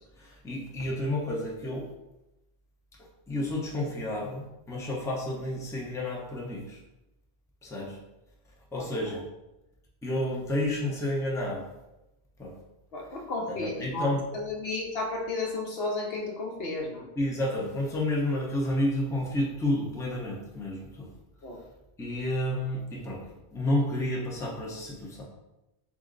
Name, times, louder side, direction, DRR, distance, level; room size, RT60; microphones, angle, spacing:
voice 1, 0.2-1.9 3.3-6.8 7.6-8.0 8.7-9.2 10.0-11.6 12.4-12.6 13.5-14.2 17.2-21.1 22.0-23.2 23.5-25.2, left 1 dB, 5° left, -3 dB, 0.6 m, -30 dB
voice 2, 12.9-17.1 21.4-21.6, left 2 dB, 70° left, 0 dB, 0.9 m, -33 dB
4.2 x 2.5 x 3.8 m, 0.95 s
omnidirectional pair, 1.1 m